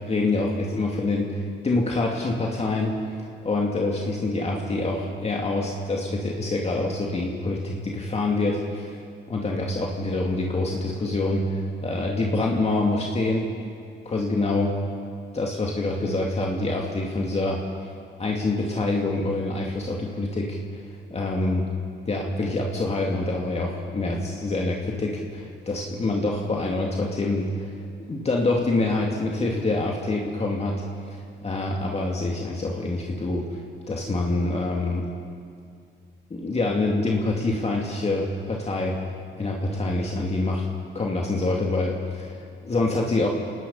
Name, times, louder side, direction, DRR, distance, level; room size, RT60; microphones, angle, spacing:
voice 1, 0.0-13.5 14.1-14.8 15.3-17.9 18.2-21.7 22.1-30.8 31.1-33.6 33.9-35.1 36.3-39.0 39.4-40.7 40.9-43.3, left 2 dB, 30° left, -1 dB, 2.5 m, -26 dB
28.0 x 19.0 x 5.6 m, 2.3 s
cardioid pair, 90°, 20 cm